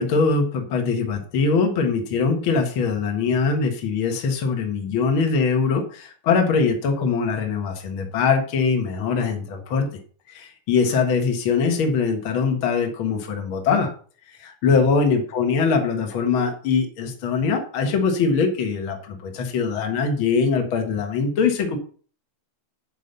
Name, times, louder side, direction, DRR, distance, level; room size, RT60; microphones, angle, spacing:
voice 1, 0.0-9.9 10.3-13.9 14.4-21.8, left 5 dB, 75° left, 4 dB, 1.1 m, -22 dB
9.8 x 5.4 x 6.8 m, 0.43 s
omnidirectional pair, 4.9 m